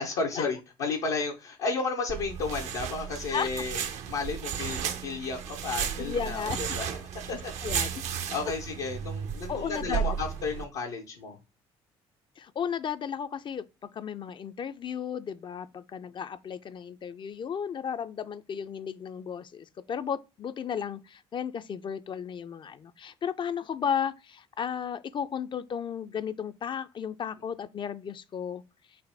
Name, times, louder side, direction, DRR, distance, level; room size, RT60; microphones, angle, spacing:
voice 1, 0.0-3.8 4.1-6.9 7.3-8.0 8.3-11.4, left 4 dB, 70° left, 0.7 m, -33 dB
sound 1, 2.1-10.6, right 8 dB, 60° right, 0.5 m, -34 dB
voice 2, 3.3-3.6 6.0-6.6 7.6-8.0 9.5-10.2 12.4-13.6 13.9-28.6, left 7 dB, 35° left, 0.4 m, -34 dB
4.1 x 2.1 x 3.3 m
hypercardioid pair, 50°, 13 cm